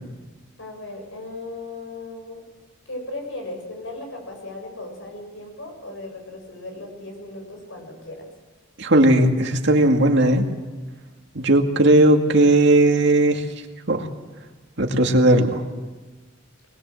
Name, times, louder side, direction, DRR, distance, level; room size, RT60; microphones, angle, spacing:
voice 1, 0.6-2.4 2.9-8.3, left 2 dB, 80° left, 2 dB, 7.6 m, -36 dB
voice 2, 8.8-10.4 11.3-13.4 13.9-14.1 14.8-15.6, right 1 dB, 65° right, 3 dB, 2.2 m, -17 dB
22.5 x 20.5 x 7.7 m, 1.3 s
head